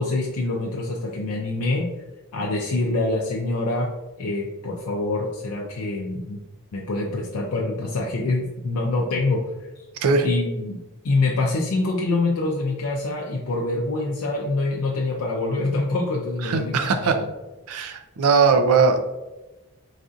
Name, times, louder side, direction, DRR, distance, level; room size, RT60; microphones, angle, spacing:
voice 1, 0.0-1.9 2.3-3.9 4.2-6.4 6.7-9.4 9.8-9.9 10.2-10.8 11.0-17.1, left 2 dB, 85° left, -2 dB, 0.5 m, -25 dB
voice 2, 16.4-17.2 17.7-19.2, right 4 dB, 85° right, 7 dB, 0.4 m, -20 dB
4.0 x 2.4 x 2.6 m, 1.0 s
head